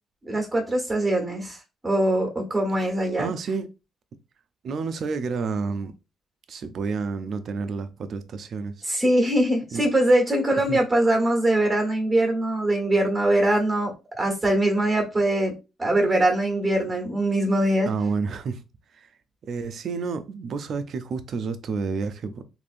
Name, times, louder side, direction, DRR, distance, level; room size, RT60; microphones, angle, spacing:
voice 1, 0.2-3.3 8.8-15.5 15.8-17.9, right 1 dB, 15° right, 1.3 m, -22 dB
voice 2, 3.2-3.7 4.6-5.9 6.5-8.8 9.7-9.8 10.7-10.8 17.9-18.6 18.9-19.1 19.4-22.4, right 4 dB, 60° right, 0.5 m, -30 dB
3.3 x 2.6 x 2.5 m
cardioid pair, 90°, 0 cm